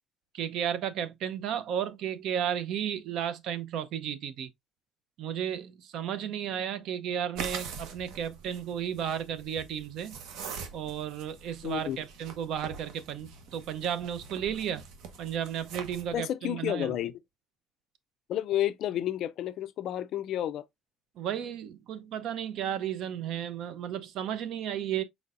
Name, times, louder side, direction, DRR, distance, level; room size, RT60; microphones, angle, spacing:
voice 1, 0.3-4.5 5.2-10.2 10.7-14.8 15.2-17.0 21.2-25.0, right 9 dB, 60° right, 0.6 m, -33 dB
sound 1, 7.3-16.2, right 5 dB, 80° right, 1.0 m, -44 dB
voice 2, 11.6-12.0 16.1-17.2 18.3-20.6, left 12 dB, 55° left, 0.4 m, -31 dB
4.5 x 4.1 x 2.4 m
cardioid pair, 155°, 0 cm